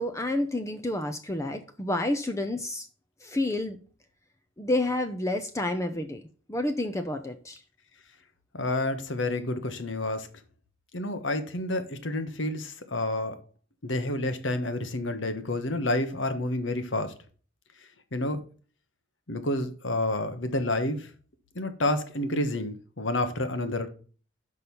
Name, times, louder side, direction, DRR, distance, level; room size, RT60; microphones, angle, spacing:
voice 1, 0.0-2.9 3.2-3.8 4.6-6.2 6.5-7.6, left 1 dB, 15° left, 0.7 m, -29 dB
voice 2, 8.5-10.3 10.9-13.4 13.8-17.1 18.1-18.4 19.3-21.1 21.5-23.9, left 1 dB, 70° left, 1.3 m, -29 dB
6.2 x 5.4 x 6.9 m
head